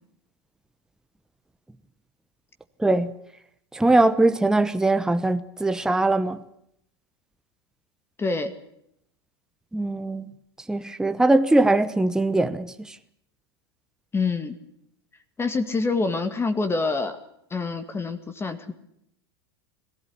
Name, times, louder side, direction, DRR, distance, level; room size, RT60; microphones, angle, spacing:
voice 1, 2.8-3.1 3.7-6.4 9.7-10.2 10.7-12.7, right 2 dB, 5° right, 1.0 m, -21 dB
voice 2, 8.2-8.5 14.1-14.6 15.4-17.2 17.5-18.7, left 3 dB, 20° left, 2.1 m, -26 dB
21.5 x 15.5 x 9.7 m
hypercardioid pair, 95°, 13 cm